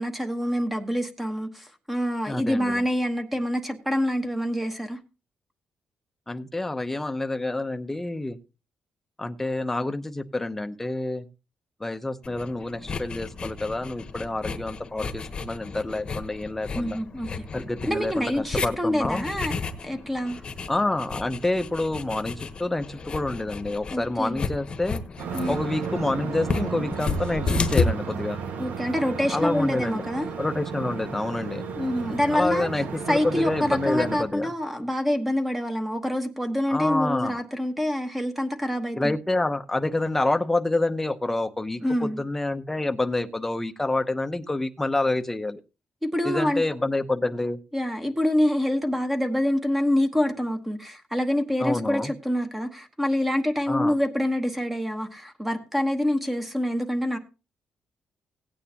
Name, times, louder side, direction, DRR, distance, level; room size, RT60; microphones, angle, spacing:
voice 1, 0.0-5.0 16.7-17.4 17.9-19.6 19.8-20.4 23.9-24.4 25.3-25.6 28.6-30.3 31.7-32.7 33.1-39.2 41.8-42.2 46.0-46.6 47.7-57.2, left 1 dB, 5° right, 1.1 m, -26 dB
voice 2, 2.3-2.8 6.3-8.4 9.2-11.3 11.8-17.0 17.5-19.3 20.7-25.0 25.5-28.4 29.3-30.1 30.4-31.7 32.3-34.5 36.7-37.4 39.0-45.6 46.2-47.6 51.6-52.1 53.7-53.9, left 2 dB, 10° left, 0.7 m, -28 dB
sound 1, 12.2-27.9, left 4 dB, 35° left, 1.0 m, -33 dB
sound 2, 25.2-34.2, right 6 dB, 75° right, 1.6 m, -34 dB
17.0 x 9.0 x 2.8 m
cardioid pair, 145°, 3 cm